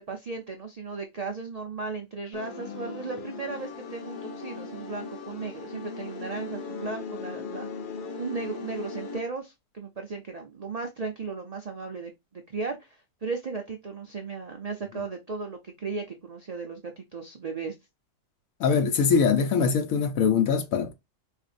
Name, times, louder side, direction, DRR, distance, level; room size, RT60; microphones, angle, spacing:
voice 1, 0.0-7.7 8.2-17.7, right 4 dB, 70° right, 0.3 m, -36 dB
sound 1, 2.3-9.2, left 4 dB, 55° left, 0.6 m, -38 dB
voice 2, 18.6-21.0, left 6 dB, 80° left, 1.2 m, -23 dB
4.4 x 2.5 x 2.5 m
omnidirectional pair, 1.4 m